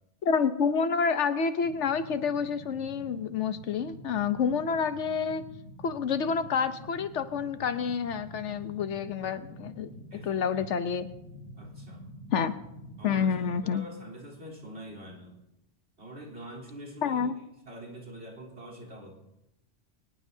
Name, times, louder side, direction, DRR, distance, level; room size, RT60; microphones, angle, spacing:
voice 1, 0.2-5.4 5.8-11.1 12.3-12.5 13.0-13.8 17.0-17.3, left 6 dB, 75° left, 11 dB, 1.1 m, -28 dB
sound 1, 1.6-13.7, equal, 50° left, 2.0 m, -47 dB
voice 2, 10.1-10.7 11.6-12.1 13.0-15.4 16.0-17.2 17.6-19.2, right 1 dB, 60° right, 0 dB, 3.8 m, -45 dB
24.0 x 18.5 x 2.7 m, 0.91 s
omnidirectional pair, 1.2 m